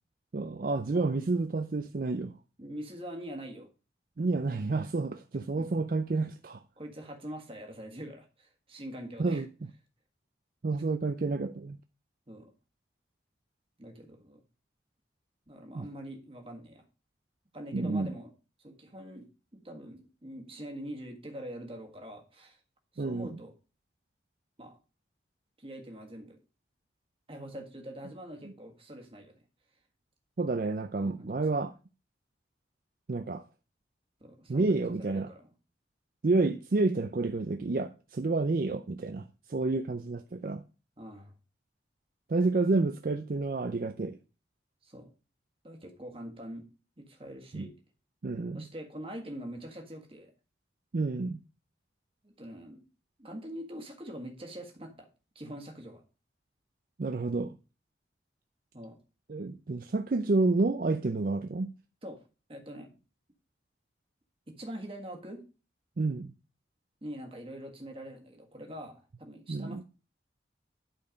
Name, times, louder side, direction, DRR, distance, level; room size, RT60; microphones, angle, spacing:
voice 1, 0.3-2.3 4.2-6.6 9.2-9.7 10.6-11.8 15.7-15.9 17.7-18.1 23.0-23.3 30.4-31.7 33.1-33.4 34.5-35.3 36.2-40.6 42.3-44.2 47.5-47.7 48.2-48.6 50.9-51.4 57.0-57.6 59.3-61.7 66.0-66.3 69.5-69.8, right 3 dB, 50° right, 0.5 m, -29 dB
voice 2, 2.6-3.7 5.6-5.8 6.8-9.4 12.3-12.5 13.8-14.4 15.5-16.8 17.5-18.3 18.6-22.6 22.9-23.5 24.6-24.8 25.6-26.4 27.3-29.4 31.0-31.4 34.2-35.5 41.0-41.3 44.8-45.1 45.6-46.7 47.0-47.7 48.5-50.3 52.2-52.8 53.2-55.1 55.3-56.0 58.7-59.0 62.0-62.2 62.5-62.9 64.5-65.4 67.0-69.8, equal, 30° right, 1.6 m, -44 dB
11.5 x 4.5 x 5.1 m
head